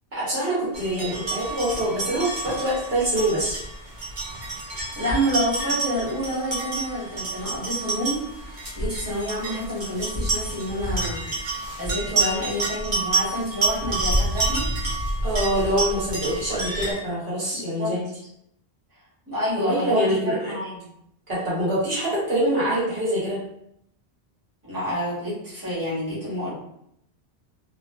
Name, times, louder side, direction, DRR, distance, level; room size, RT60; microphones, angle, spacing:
voice 1, 0.1-3.6 15.2-18.1 19.6-20.5 21.3-23.4, right 1 dB, 65° right, -8 dB, 1.5 m, -25 dB
sound 1, 0.7-16.9, right 2 dB, 45° right, 1.0 m, -28 dB
voice 2, 4.6-14.7 17.5-17.9 19.3-20.1 20.4-20.8 24.6-26.6, equal, 20° right, -8 dB, 1.4 m, -28 dB
3.0 x 2.9 x 2.3 m, 0.74 s
omnidirectional pair, 1.1 m